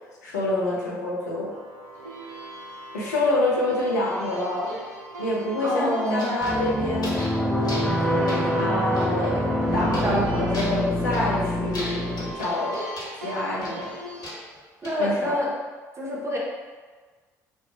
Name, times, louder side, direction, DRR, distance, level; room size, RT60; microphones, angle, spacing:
voice 1, 0.2-1.5 2.9-4.8 5.2-7.1 7.8-9.4 9.7-12.8 13.2-13.9 15.0-15.3, left 1 dB, 85° left, -6 dB, 0.6 m, -27 dB
sound 1, 1.5-14.3, right 1 dB, 90° right, 0.4 m, -40 dB
voice 2, 5.6-6.3 10.0-10.3 14.8-15.5 16.0-16.4, equal, 30° right, -3 dB, 0.7 m, -27 dB
sound 2, 6.1-7.4 7.6-8.0 8.3-9.3 9.9-10.2 10.5-11.4 11.7-13.2 13.6-15.0, left 1 dB, 50° left, 1.0 m, -38 dB
sound 3, 6.4-12.3, left 1 dB, 5° left, 0.4 m, -25 dB
3.0 x 2.1 x 2.9 m, 1.4 s
hypercardioid pair, 50°, 9 cm